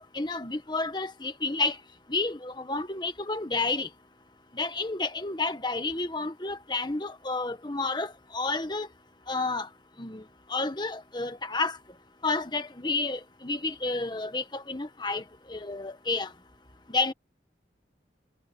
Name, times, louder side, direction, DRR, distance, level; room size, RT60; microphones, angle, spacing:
voice 1, 0.0-1.8 2.1-3.9 4.5-8.9 9.3-9.7 10.0-10.2 10.5-11.8 12.2-15.2 15.5-16.3 16.9-17.1, left 3 dB, 25° left, 1.4 m, -30 dB
head